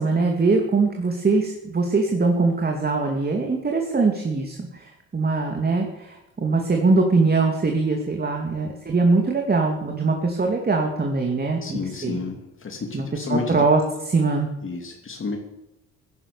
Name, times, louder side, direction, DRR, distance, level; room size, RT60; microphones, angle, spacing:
voice 1, 0.0-12.2 12.9-13.0 13.3-13.8 14.1-14.5, right 3 dB, 30° right, 2 dB, 2.8 m, -22 dB
voice 2, 11.6-13.6 14.6-15.4, left 4 dB, 40° left, 2 dB, 2.7 m, -31 dB
16.5 x 11.0 x 7.0 m, 0.91 s
cardioid pair, 90°, 30 cm